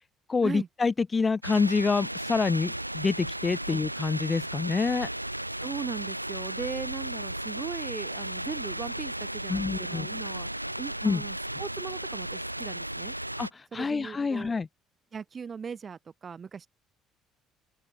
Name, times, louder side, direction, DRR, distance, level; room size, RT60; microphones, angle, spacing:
voice 1, 0.3-5.1 9.5-10.1 11.0-11.2 13.4-14.7, left 4 dB, 25° left, 0.5 m, -27 dB
sound 1, 1.4-13.5, right 1 dB, 90° right, 1.9 m, -35 dB
voice 2, 5.6-10.5 10.8-13.1 13.7-14.5 15.1-16.7, right 6 dB, 35° right, 3.7 m, -39 dB
open air
figure-of-eight pair, 55°, 0 cm